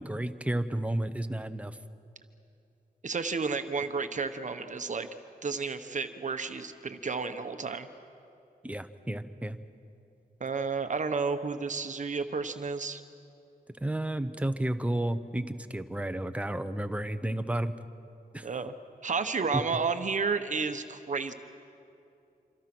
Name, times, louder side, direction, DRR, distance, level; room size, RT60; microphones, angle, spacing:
voice 1, 0.0-1.8 8.6-9.6 13.8-17.7 18.3-18.5 19.5-19.6, right 1 dB, 10° right, 10 dB, 0.9 m, -32 dB
voice 2, 3.0-5.1 5.4-7.9 10.4-13.0 18.4-18.7 19.0-21.3, right 4 dB, 50° right, 8 dB, 1.1 m, -31 dB
26.5 x 26.0 x 6.1 m, 2.7 s
wide cardioid pair, 135°, 17 cm